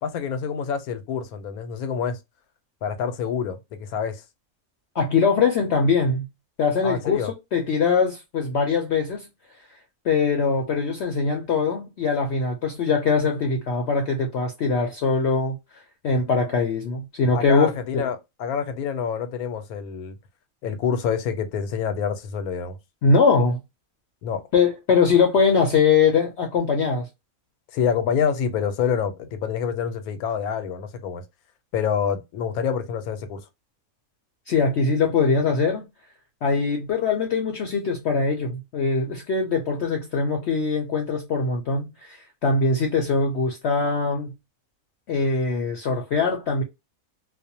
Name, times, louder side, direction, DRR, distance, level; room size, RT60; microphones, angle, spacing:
voice 1, 0.0-2.2 2.8-4.2 6.8-7.3 17.3-20.1 20.6-22.8 24.2-24.4 27.7-31.2 31.7-33.4, left 7 dB, 90° left, 1.1 m, -27 dB
voice 2, 4.9-6.3 6.6-9.3 10.0-15.6 16.0-18.1 23.0-23.6 24.5-27.1 34.5-35.8 36.4-44.3 45.1-46.6, left 4 dB, 65° left, 0.7 m, -22 dB
2.4 x 2.0 x 2.7 m
omnidirectional pair, 1.5 m